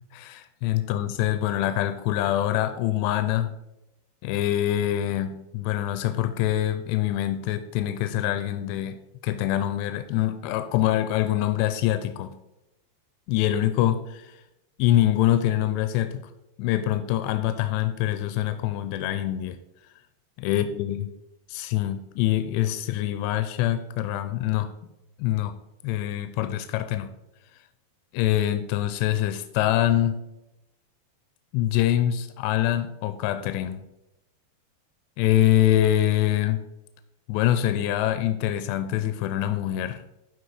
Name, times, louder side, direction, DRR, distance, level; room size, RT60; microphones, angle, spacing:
voice 1, 0.1-3.5 4.2-12.3 13.3-14.3 14.8-16.2 16.6-19.6 20.4-21.1 21.5-24.7 25.2-25.5 25.8-27.1 28.1-30.2 31.5-33.8 35.2-36.6 37.3-40.0, left 12 dB, 90° left, 10 dB, 2.8 m, -24 dB
11.5 x 4.8 x 4.9 m, 0.91 s
omnidirectional pair, 4.9 m